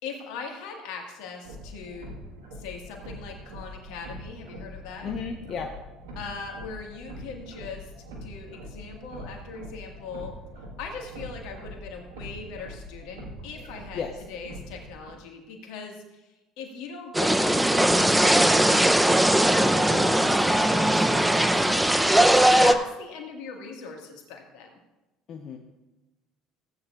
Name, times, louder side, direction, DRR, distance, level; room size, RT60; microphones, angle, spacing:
voice 1, 0.0-2.2 2.5-5.1 6.2-7.9 8.2-10.4 10.8-19.9 20.1-21.9 22.3-24.7, left 5 dB, 70° left, 2 dB, 1.8 m, -40 dB
sound 1, 1.4-15.1, equal, 85° right, 1.5 m, -43 dB
voice 2, 5.0-5.7 13.6-13.7 13.9-14.2 19.6-20.4 25.3-25.6, left 6 dB, 50° left, 2 dB, 0.9 m, -35 dB
sound 2, 17.1-22.7, right 1 dB, 5° right, 0.6 m, -20 dB
15.5 x 8.8 x 2.5 m, 1.1 s
hypercardioid pair, 70°, 0 cm